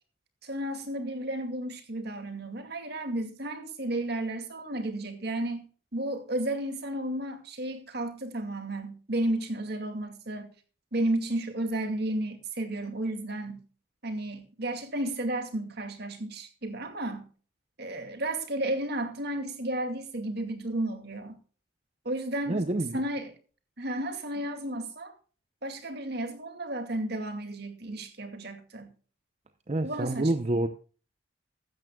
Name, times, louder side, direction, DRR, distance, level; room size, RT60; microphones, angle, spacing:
voice 1, 0.4-5.7 5.9-10.5 10.9-13.6 14.0-17.3 17.8-21.4 22.0-23.3 23.8-25.1 25.6-28.9 29.8-30.3, right 1 dB, 55° right, 2.3 m, -33 dB
voice 2, 22.5-23.0 29.7-30.7, right 2 dB, 35° right, 0.7 m, -27 dB
15.5 x 12.5 x 2.3 m
head